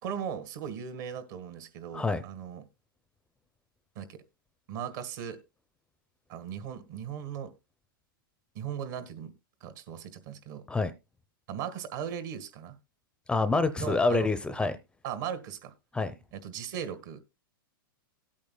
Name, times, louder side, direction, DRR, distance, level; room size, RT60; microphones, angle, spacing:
voice 1, 0.0-2.6 4.0-4.2 4.7-5.4 6.3-7.5 8.6-9.3 9.6-10.6 11.5-12.7 13.8-14.3 15.0-15.7 16.3-17.2, right 8 dB, 60° right, 1.9 m, -38 dB
voice 2, 13.3-14.8 15.9-16.1, left 3 dB, 10° left, 0.6 m, -26 dB
18.0 x 8.6 x 2.2 m
hypercardioid pair, 130°, 12 cm